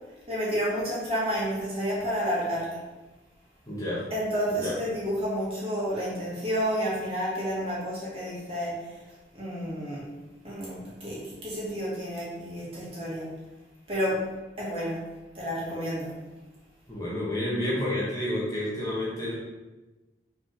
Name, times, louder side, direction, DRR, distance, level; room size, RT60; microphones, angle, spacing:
voice 1, 0.3-2.8 4.1-8.8 9.4-10.0 10.4-13.3 13.9-14.2 14.6-15.0 15.3-16.1, equal, 35° right, -7 dB, 2.1 m, -30 dB
voice 2, 3.7-4.0 4.5-4.7 16.9-19.4, left 1 dB, 20° left, -7 dB, 1.4 m, -30 dB
5.0 x 4.0 x 4.8 m, 1.1 s
head